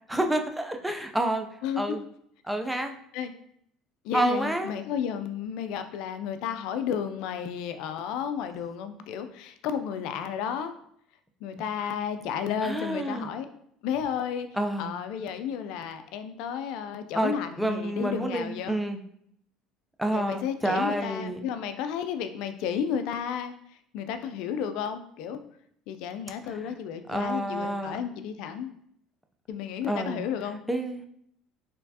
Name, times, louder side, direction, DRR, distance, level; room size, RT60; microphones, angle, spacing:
voice 1, 0.1-1.5 1.8-2.0 2.4-2.9 4.1-4.8 12.6-13.3 14.5-15.0 17.1-19.0 20.0-21.4 26.5-26.7 27.1-28.0 29.9-30.2 30.7-31.0, right 1 dB, 5° right, 4 dB, 0.5 m, -29 dB
voice 2, 1.6-2.0 3.1-3.3 4.0-10.7 11.4-13.5 13.8-14.5 14.8-18.8 20.1-23.5 23.9-25.4 25.9-28.7 29.5-30.6, left 8 dB, 70° left, 9 dB, 0.4 m, -32 dB
4.3 x 3.3 x 2.8 m, 0.70 s
supercardioid pair, 105°, 0 cm